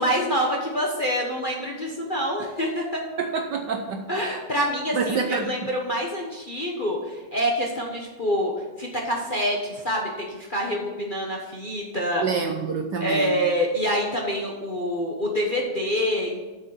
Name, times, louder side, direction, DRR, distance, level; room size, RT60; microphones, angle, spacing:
voice 1, 0.0-3.0 4.1-8.5 8.8-12.2 13.0-16.4, equal, 30° left, -2 dB, 1.0 m, -26 dB
voice 2, 3.2-4.1 4.9-5.5 12.2-13.4, right 5 dB, 65° right, 4 dB, 1.2 m, -27 dB
7.6 x 6.6 x 8.0 m, 1.2 s
omnidirectional pair, 2.4 m